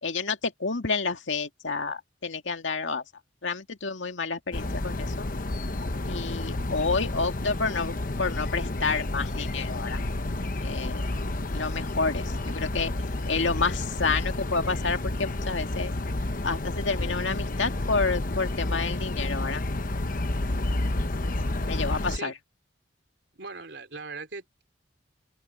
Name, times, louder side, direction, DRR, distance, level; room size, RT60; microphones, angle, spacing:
voice 1, 0.0-3.0 3.4-5.3 6.1-10.0 10.6-11.0 11.5-12.9 13.3-15.9 16.4-19.6 21.6-22.3, left 4 dB, 80° left, 2.0 m, -29 dB
sound 1, 4.5-22.2, left 2 dB, 45° left, 1.0 m, -30 dB
voice 2, 23.3-24.6, right 4 dB, 65° right, 3.7 m, -40 dB
open air
head